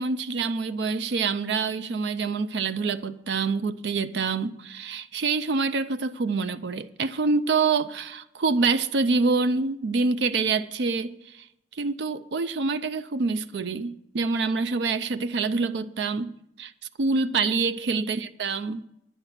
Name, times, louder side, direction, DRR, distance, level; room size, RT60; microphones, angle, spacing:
voice 1, 0.0-11.5 11.7-16.7 17.0-18.8, right 4 dB, 70° right, 0.5 m, -26 dB
10.5 x 9.3 x 5.7 m
head